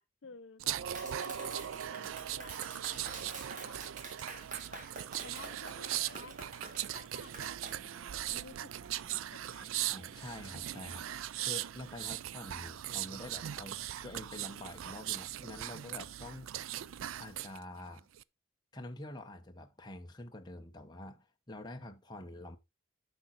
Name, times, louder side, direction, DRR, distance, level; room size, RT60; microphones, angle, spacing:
voice 1, 0.0-3.9 4.5-4.9 5.2-9.7, left 5 dB, 65° left, 0.6 m, -55 dB
sound 1, 0.6-17.6 18.0-18.2, right 12 dB, 75° right, 0.4 m, -39 dB
Clapping, 0.9-7.8, right 4 dB, 40° right, 1.4 m, -47 dB
voice 2, 9.9-16.5 17.2-18.1 18.7-22.6, left 1 dB, 20° left, 0.9 m, -47 dB
10.0 x 6.1 x 3.9 m
head